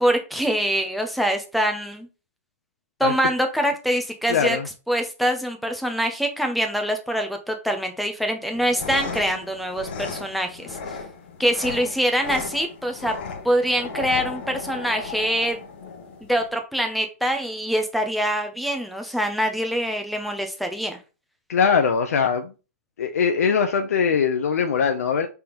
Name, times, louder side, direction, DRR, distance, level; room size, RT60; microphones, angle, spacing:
voice 1, 0.0-2.1 3.0-4.6 4.9-11.0 11.4-13.1 13.4-15.6 16.2-21.0, equal, ahead, 0.4 m, -24 dB
voice 2, 4.3-4.7 21.5-22.5 23.0-25.3, left 6 dB, 75° left, 0.6 m, -21 dB
sound 1, 8.5-16.5, left 4 dB, 40° left, 0.8 m, -35 dB
5.3 x 3.4 x 2.9 m
hypercardioid pair, 175°, 8 cm